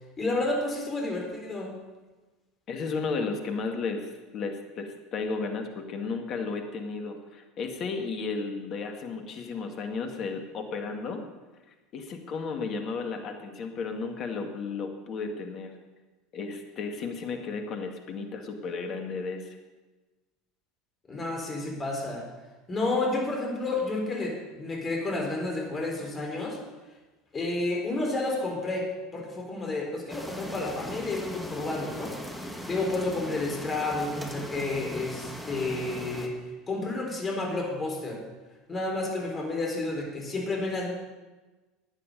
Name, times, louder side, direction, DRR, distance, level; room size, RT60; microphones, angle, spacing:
voice 1, 0.2-1.7 21.1-22.3 22.7-26.6 27.3-32.1 32.7-36.4 36.7-38.2 38.7-40.9, left 2 dB, 25° left, 0 dB, 3.9 m, -30 dB
voice 2, 2.7-11.3 11.9-15.7 16.3-19.6, left 4 dB, 45° left, 5 dB, 2.1 m, -34 dB
sound 1, 30.1-36.3, left 1 dB, 5° left, 2.0 m, -39 dB
15.0 x 9.9 x 5.4 m, 1.2 s
hypercardioid pair, 75°, 0 cm